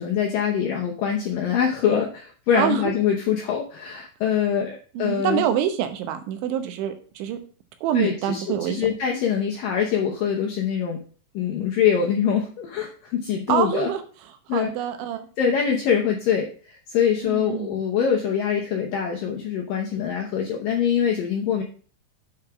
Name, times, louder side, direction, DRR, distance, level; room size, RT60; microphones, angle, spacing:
voice 1, 0.0-5.4 7.9-11.0 11.3-13.9 14.5-14.7 15.4-21.6, left 8 dB, 75° left, 0 dB, 2.0 m, -24 dB
voice 2, 2.6-2.9 5.0-7.4 7.8-8.8 13.5-14.0 14.5-15.3 17.2-17.7, right 10 dB, 90° right, 8 dB, 3.4 m, -25 dB
8.0 x 5.0 x 5.9 m, 0.41 s
omnidirectional pair, 5.2 m